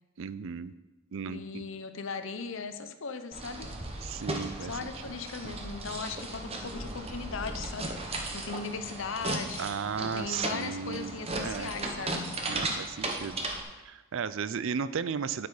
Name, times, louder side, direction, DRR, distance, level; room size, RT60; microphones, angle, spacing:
voice 1, 0.2-0.7 1.1-1.7 4.0-4.9 9.6-11.1 11.4-11.7 12.5-13.5 13.8-15.5, right 6 dB, 60° right, 15 dB, 0.4 m, -35 dB
voice 2, 1.3-3.7 4.6-9.7 10.0-12.2, left 5 dB, 60° left, 9 dB, 0.7 m, -38 dB
sound 1, 3.3-13.6, right 2 dB, 25° right, 1.0 m, -36 dB
9.5 x 8.4 x 4.8 m, 1.1 s
head